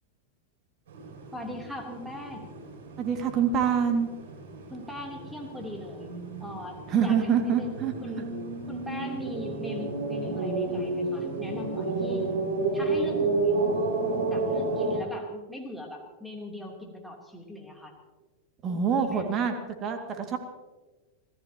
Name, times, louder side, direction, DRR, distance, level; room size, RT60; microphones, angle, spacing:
sound 1, 0.9-15.0, right 3 dB, 55° right, 7.3 m, -31 dB
voice 1, 1.3-2.5 4.7-6.1 6.4-7.7 8.0-8.2 8.7-12.3 12.7-14.0 14.3-17.9 18.9-19.2, left 1 dB, ahead, 1 dB, 3.4 m, -40 dB
voice 2, 3.0-4.1 6.9-7.9 9.8-9.9 10.8-10.9 18.6-20.4, right 7 dB, 30° right, 5 dB, 2.3 m, -26 dB
26.0 x 17.5 x 3.0 m, 1.3 s
figure-of-eight pair, 90°, 0 cm